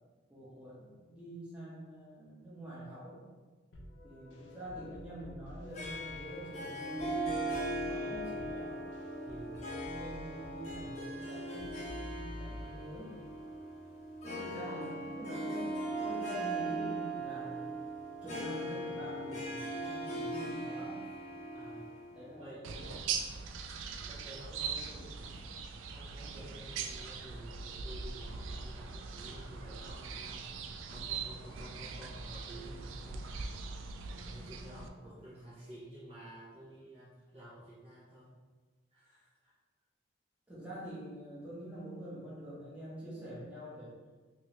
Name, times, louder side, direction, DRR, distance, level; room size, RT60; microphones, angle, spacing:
voice 1, 0.3-3.2 4.0-8.7 9.8-13.1 14.2-17.8 18.2-21.0 22.1-23.1 24.7-25.1 35.0-35.1 40.5-44.0, equal, 5° right, -8 dB, 0.9 m, -46 dB
sound 1, 3.7-13.8, left 1 dB, 70° left, 0.5 m, -49 dB
Harp, 5.7-22.5, right 1 dB, 35° left, 0.7 m, -39 dB
voice 2, 9.3-9.6 14.6-14.9 21.5-21.9 22.4-22.6 24.0-25.3 25.9-33.5 34.0-38.3 38.9-39.5, right 1 dB, 30° right, -9 dB, 0.7 m, -51 dB
sound 2, 22.6-34.9, right 5 dB, 85° right, 0.3 m, -41 dB
3.1 x 3.0 x 2.9 m, 1.4 s
head